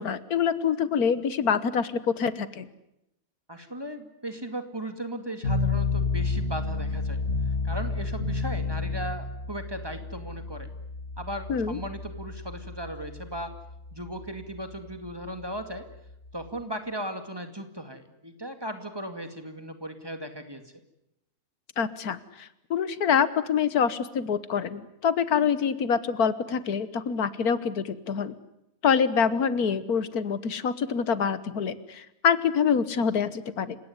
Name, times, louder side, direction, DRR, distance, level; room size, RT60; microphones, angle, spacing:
voice 1, 0.0-2.7 11.5-11.8 21.8-28.3 28.8-33.8, left 7 dB, 85° left, 15 dB, 1.7 m, -26 dB
voice 2, 3.5-7.2 7.6-10.7 11.2-13.5 13.9-15.9 16.3-20.7, right 1 dB, 15° right, 7 dB, 2.4 m, -37 dB
sound 1, 5.4-16.6, left 4 dB, 45° left, 2.3 m, -31 dB
29.5 x 17.5 x 9.7 m, 0.85 s
omnidirectional pair, 1.5 m